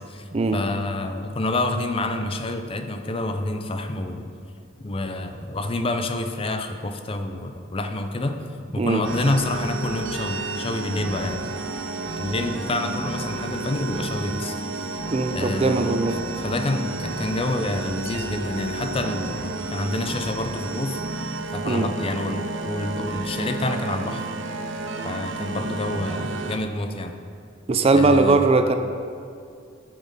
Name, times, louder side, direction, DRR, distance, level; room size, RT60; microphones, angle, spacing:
voice 1, 0.0-4.3 4.8-8.4 8.7-11.4 12.2-15.0 15.3-16.1 16.4-21.0 21.5-24.3 25.0-27.2 27.9-28.4, left 2 dB, 30° left, 7 dB, 0.5 m, -28 dB
sound 1, 9.0-26.6, right 3 dB, 65° right, 0.7 m, -31 dB
voice 2, 15.1-16.2 21.7-21.9 27.7-28.8, right 3 dB, 30° right, 8 dB, 0.4 m, -19 dB
8.5 x 6.3 x 5.4 m, 2.3 s
head